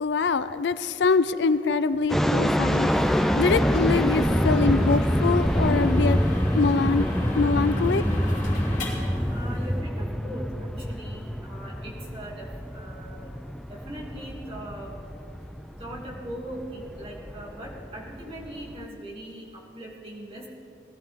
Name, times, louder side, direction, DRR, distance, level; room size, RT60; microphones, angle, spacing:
voice 1, 0.0-2.9 3.3-6.2 6.5-8.0, left 4 dB, 70° left, 0.4 m, -24 dB
sound 1, 2.1-18.8, equal, ahead, 0.3 m, -26 dB
sound 2, 2.7-9.8, left 1 dB, 40° left, 3.6 m, -37 dB
voice 2, 9.3-13.3 13.7-14.9 15.8-19.4 19.7-20.5, right 1 dB, 30° right, 2.6 m, -40 dB
20.5 x 14.0 x 3.6 m
head